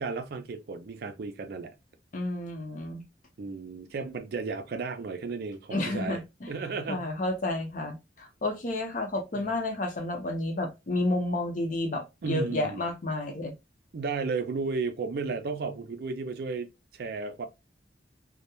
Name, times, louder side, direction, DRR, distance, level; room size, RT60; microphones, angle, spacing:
voice 1, 0.0-1.7 3.4-6.2 6.5-7.1 9.3-9.4 12.2-12.8 13.9-17.5, right 4 dB, 55° right, 0.4 m, -34 dB
voice 2, 2.1-3.0 5.7-6.5 6.9-13.5, left 2 dB, 45° left, 0.6 m, -31 dB
2.3 x 2.1 x 2.8 m
head